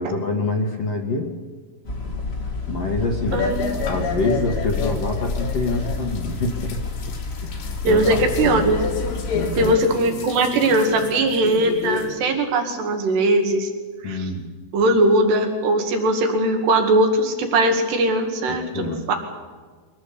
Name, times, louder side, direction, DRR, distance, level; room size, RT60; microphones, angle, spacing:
voice 1, 0.0-1.3 2.7-3.5 3.8-6.8 7.4-8.7 9.3-9.8 14.0-14.5 18.5-19.0, left 2 dB, 55° left, 3 dB, 1.8 m, -26 dB
sound 1, 1.8-9.8, left 4 dB, 25° left, 1.3 m, -29 dB
sound 2, 3.3-12.1, left 4 dB, 80° left, 4.8 m, -31 dB
voice 2, 3.3-3.7 7.8-8.8 9.6-13.7 14.0-14.3 14.7-19.2, right 1 dB, 70° right, 5 dB, 4.3 m, -20 dB
23.5 x 17.5 x 8.5 m, 1.5 s
omnidirectional pair, 5.0 m